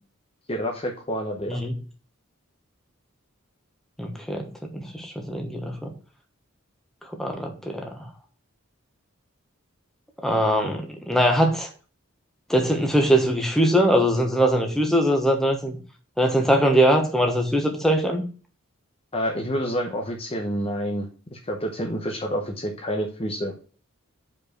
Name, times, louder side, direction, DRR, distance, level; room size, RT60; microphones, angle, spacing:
voice 1, 0.5-1.6 19.1-23.5, equal, 25° left, 2 dB, 0.9 m, -28 dB
voice 2, 4.0-5.9 7.1-8.0 10.2-11.7 12.5-15.8 16.2-18.2, equal, ahead, 2 dB, 1.2 m, -22 dB
5.5 x 4.6 x 6.2 m, 0.37 s
head